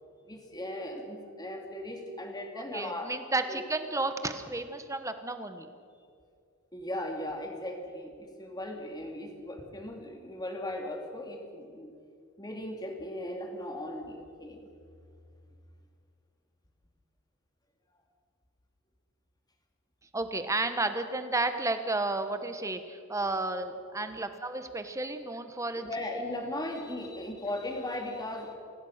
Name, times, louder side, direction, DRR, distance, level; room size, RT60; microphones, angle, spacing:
voice 1, 0.3-3.1 3.5-3.6 6.7-11.9 12.4-14.7 25.8-28.6, left 1 dB, 20° left, 2 dB, 2.7 m, -38 dB
voice 2, 2.6-5.7 20.1-25.8, right 2 dB, 15° right, 9 dB, 1.2 m, -32 dB
26.0 x 16.5 x 6.6 m, 2.3 s
head